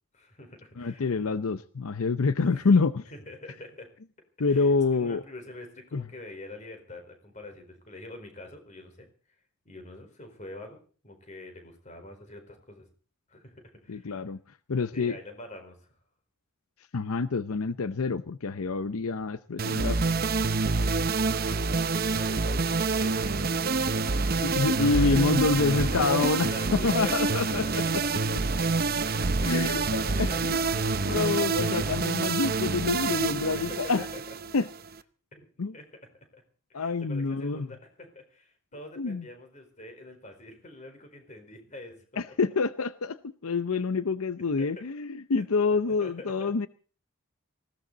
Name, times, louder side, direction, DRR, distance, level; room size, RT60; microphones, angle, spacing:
voice 1, 0.1-1.2 2.4-2.7 3.1-3.9 4.4-4.7 5.0-9.1 9.6-10.8 11.0-12.9 13.3-14.2 14.9-16.0 21.7-23.6 24.9-25.2 25.7-27.3 27.6-28.3 29.0-30.6 31.0-31.8 33.5-34.3 35.3-35.9 36.3-36.4 36.7-42.0 44.4-44.9 45.7-46.5, left 2 dB, 35° left, 6 dB, 4.4 m, -45 dB
voice 2, 0.8-3.0 4.4-5.2 5.9-6.0 13.9-14.4 14.7-15.2 16.9-20.0 24.4-27.8 29.5-30.7 31.1-34.1 34.5-34.7 35.6-35.7 36.7-37.7 39.0-39.2 42.2-43.2 43.4-46.7, left 4 dB, 85° left, 13 dB, 0.7 m, -27 dB
sound 1, 19.6-35.0, right 4 dB, 45° right, 0.8 m, -27 dB
19.5 x 16.5 x 4.0 m, 0.41 s
head